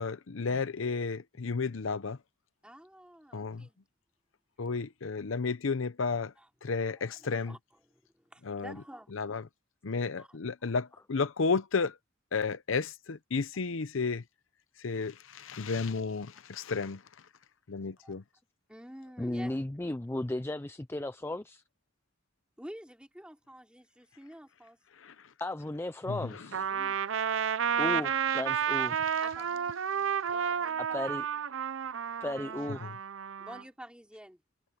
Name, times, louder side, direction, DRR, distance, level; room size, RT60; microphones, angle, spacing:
voice 1, 0.0-2.2 3.3-3.7 4.6-6.3 6.6-7.6 8.4-8.8 9.1-9.4 9.8-12.0 12.3-14.2 14.8-17.0 17.7-18.2 25.0-25.1 26.1-26.2, left 4 dB, 80° left, 0.7 m, -32 dB
voice 2, 2.6-3.8 6.4-6.5 7.0-9.1 10.2-10.4 18.0-18.2 18.7-19.6 22.6-24.8 26.7-27.0 29.2-29.7 30.3-31.1 33.4-34.4, equal, 5° right, 3.6 m, -49 dB
voice 3, 19.2-21.6 25.4-26.7 27.8-29.0 30.8-31.3 32.2-32.9, left 1 dB, 10° left, 0.4 m, -35 dB
Trumpet, 26.5-33.6, right 8 dB, 75° right, 0.6 m, -31 dB
head